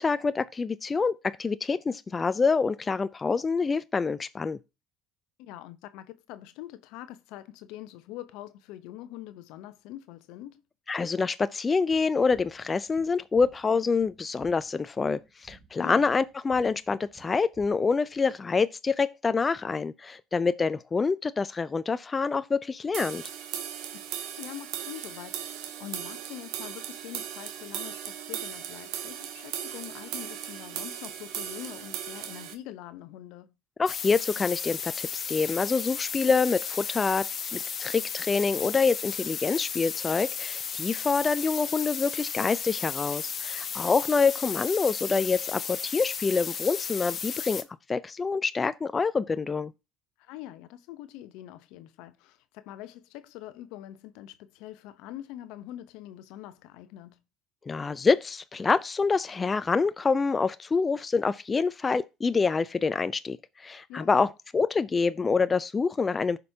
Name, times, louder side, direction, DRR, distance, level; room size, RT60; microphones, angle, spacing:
voice 1, 0.0-4.6 10.9-23.2 33.8-49.7 57.7-66.4, left 4 dB, 30° left, 0.4 m, -26 dB
voice 2, 5.4-10.6 15.8-16.1 23.9-24.0 24.4-33.5 50.2-57.2 63.9-64.3, left 13 dB, 75° left, 0.8 m, -44 dB
sound 1, 11.9-18.2, right 4 dB, 15° right, 2.3 m, -56 dB
sound 2, 22.9-32.5, right 10 dB, 75° right, 1.0 m, -37 dB
sound 3, 33.9-47.6, left 7 dB, 45° left, 1.1 m, -34 dB
15.0 x 5.2 x 2.8 m
hypercardioid pair, 70°, 0 cm